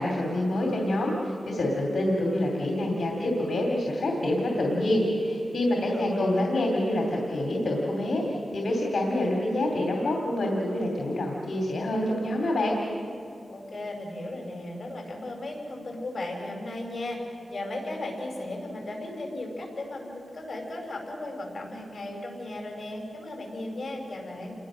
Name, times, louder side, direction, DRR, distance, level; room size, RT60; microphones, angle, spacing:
voice 1, 0.0-12.8, left 1 dB, 65° left, 0 dB, 2.9 m, -27 dB
voice 2, 5.7-6.4 13.5-24.5, left 1 dB, 40° left, 1 dB, 5.4 m, -36 dB
28.5 x 21.0 x 6.4 m, 2.6 s
wide cardioid pair, 150°, 0 cm